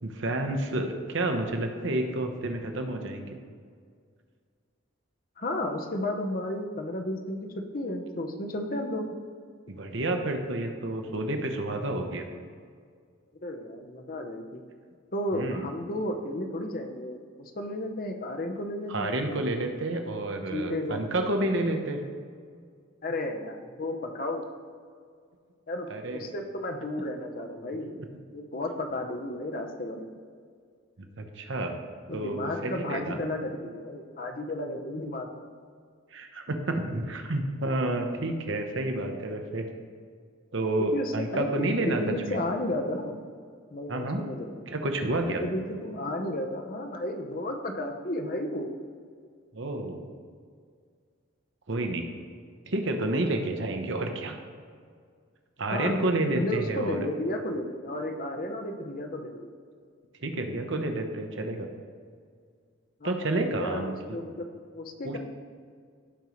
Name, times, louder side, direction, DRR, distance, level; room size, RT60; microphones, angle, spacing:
voice 1, 0.0-3.3 9.8-12.3 15.3-15.7 18.9-22.0 25.9-26.3 31.2-31.7 32.1-33.2 36.1-39.6 40.5-42.0 42.3-42.4 43.9-44.2 44.7-45.4 49.5-50.0 51.7-52.1 52.7-54.4 55.6-57.0 60.2-61.7 63.0-64.2 65.0-65.2, right 2 dB, 60° right, 4 dB, 1.0 m, -30 dB
voice 2, 5.4-7.4 7.7-9.1 13.4-14.6 15.1-19.3 20.5-21.0 23.0-24.5 25.7-28.0 28.3-30.2 32.1-35.3 40.8-41.7 42.0-43.2 43.7-44.6 45.4-48.7 55.7-59.5 63.0-64.5 64.7-65.2, left 1 dB, 45° left, 4 dB, 0.9 m, -33 dB
16.5 x 5.4 x 3.1 m, 2.1 s
head